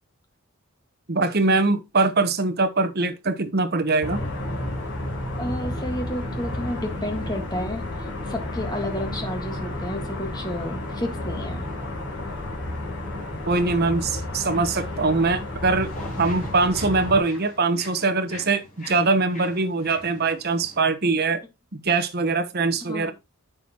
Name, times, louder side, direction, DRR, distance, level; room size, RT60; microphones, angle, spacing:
voice 1, 1.1-4.2 13.5-21.4 21.7-23.1, right 3 dB, 45° right, 1.0 m, -22 dB
sound 1, 4.0-17.2, left 1 dB, 55° left, 4.7 m, -31 dB
voice 2, 5.4-11.6 22.9-23.1, left 1 dB, 20° left, 1.8 m, -31 dB
sound 2, 15.8-20.9, left 1 dB, 35° left, 5.9 m, -43 dB
8.8 x 6.8 x 3.0 m
head